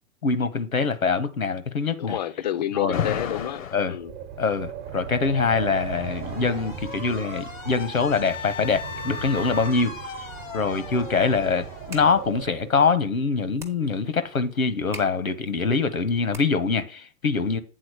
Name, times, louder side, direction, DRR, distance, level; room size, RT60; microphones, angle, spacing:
voice 1, 0.2-2.2 2.7-3.0 3.7-4.0 4.4-9.9 10.5-17.6, left 4 dB, 90° left, 1.1 m, -24 dB
voice 2, 2.0-3.6 3.9-4.1, left 10 dB, 35° left, 0.5 m, -28 dB
Alarm, 2.9-3.9 5.1-12.8, left 8 dB, 70° left, 0.8 m, -36 dB
Wind, 4.0-12.7, right 8 dB, 35° right, 1.0 m, -37 dB
sound 1, 11.8-16.8, right 2 dB, 5° right, 0.7 m, -47 dB
8.6 x 3.9 x 6.2 m
figure-of-eight pair, 125°, 41 cm